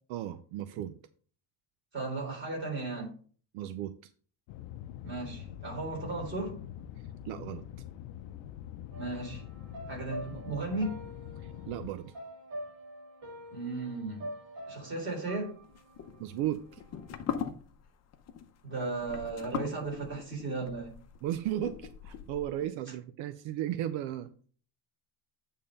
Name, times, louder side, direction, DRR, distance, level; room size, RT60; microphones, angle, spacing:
voice 1, 0.1-1.0 3.5-4.1 7.2-7.6 11.4-12.1 16.2-16.8 21.2-24.3, right 12 dB, 75° right, 10 dB, 0.6 m, -35 dB
voice 2, 1.9-3.1 5.0-6.5 9.0-9.4 9.9-11.0 13.5-14.3 14.7-15.5 18.6-20.9, right 3 dB, 25° right, -1 dB, 3.5 m, -35 dB
sound 1, 4.5-12.0, left 11 dB, 75° left, 0.6 m, -44 dB
sound 2, 8.9-17.2, equal, 45° right, 2.7 m, -46 dB
sound 3, 15.6-22.7, left 8 dB, 35° left, 0.7 m, -40 dB
8.7 x 3.7 x 5.3 m, 0.44 s
cardioid pair, 170°, 46 cm